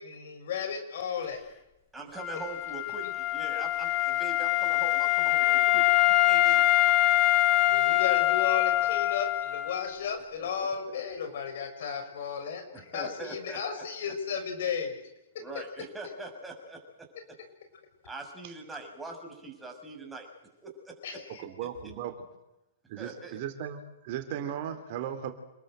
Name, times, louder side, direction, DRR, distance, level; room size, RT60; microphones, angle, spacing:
voice 1, 0.0-1.4 7.7-14.9 21.0-21.4, left 7 dB, 60° left, 6 dB, 6.3 m, -34 dB
voice 2, 1.9-6.6 10.4-10.8 12.7-13.8 15.4-16.8 18.1-20.3 20.6-20.9 21.6-21.7 23.0-23.4, right 2 dB, 10° right, 2 dB, 6.9 m, -42 dB
Wind instrument woodwind instrument, 2.2-9.9, left 16 dB, 30° left, 3.3 m, -24 dB
voice 3, 21.4-22.1 22.9-25.3, right 9 dB, 45° right, 7 dB, 3.5 m, -36 dB
28.0 x 21.5 x 7.9 m, 0.92 s
figure-of-eight pair, 110°, 0 cm